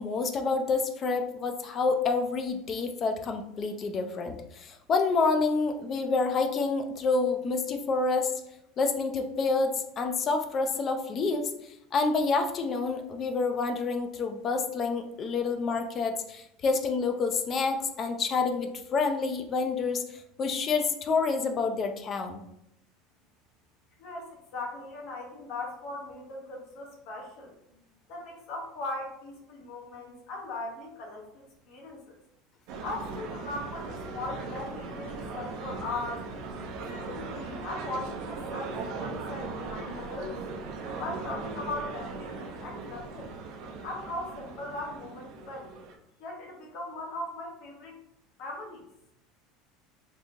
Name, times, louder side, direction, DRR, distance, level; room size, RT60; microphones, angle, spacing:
voice 1, 0.0-8.3 8.8-20.0 20.4-22.4, left 4 dB, 30° left, 6 dB, 0.3 m, -28 dB
voice 2, 24.0-27.5 28.1-32.2 32.8-36.2 36.9-40.4 41.0-43.3 43.8-45.7 46.2-48.0 48.4-48.8, left 2 dB, 55° left, -1 dB, 0.8 m, -39 dB
sound 1, 32.7-45.9, right 3 dB, 50° right, 0.5 m, -39 dB
3.6 x 2.7 x 2.5 m, 0.80 s
cardioid pair, 160°, 0 cm